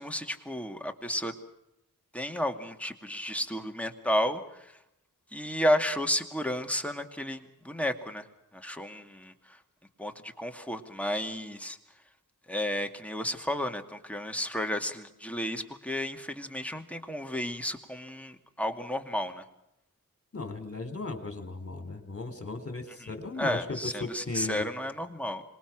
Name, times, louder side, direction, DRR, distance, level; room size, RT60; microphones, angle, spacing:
voice 1, 0.0-1.3 2.1-4.7 5.3-8.2 8.5-9.3 10.0-11.8 12.5-19.4 23.0-23.1 23.4-25.4, equal, 5° left, 4 dB, 2.4 m, -32 dB
voice 2, 20.3-24.7, left 3 dB, 45° left, 7 dB, 4.0 m, -36 dB
26.5 x 21.5 x 6.2 m, 0.83 s
wide cardioid pair, 75°, 34 cm